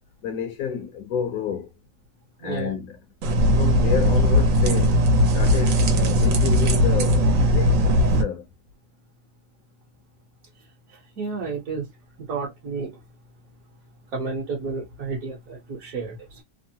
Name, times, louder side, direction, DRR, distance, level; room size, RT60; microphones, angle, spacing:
voice 1, 0.2-1.7 2.4-3.0 3.6-5.0 5.3-8.5 16.0-16.1, left 7 dB, 70° left, 0.9 m, -30 dB
voice 2, 2.4-2.7 11.2-11.8 12.3-12.9 14.1-16.4, right 4 dB, 60° right, 1.3 m, -31 dB
sound 1, 3.2-8.2, equal, 90° right, 1.5 m, -18 dB
3.5 x 2.0 x 2.7 m
omnidirectional pair, 1.9 m